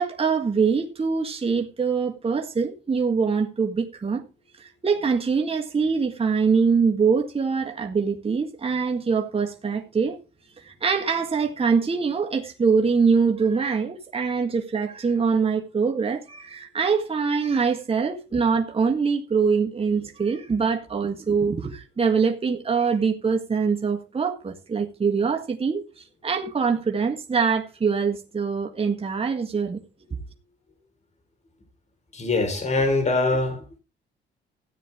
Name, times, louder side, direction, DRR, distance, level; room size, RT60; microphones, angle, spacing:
voice 1, 0.0-4.2 4.6-10.2 10.6-29.8, right 5 dB, 30° right, 1.7 m, -24 dB
voice 2, 32.1-33.8, left 2 dB, 35° left, 4.4 m, -23 dB
14.5 x 9.3 x 3.6 m
cardioid pair, 90°, 20 cm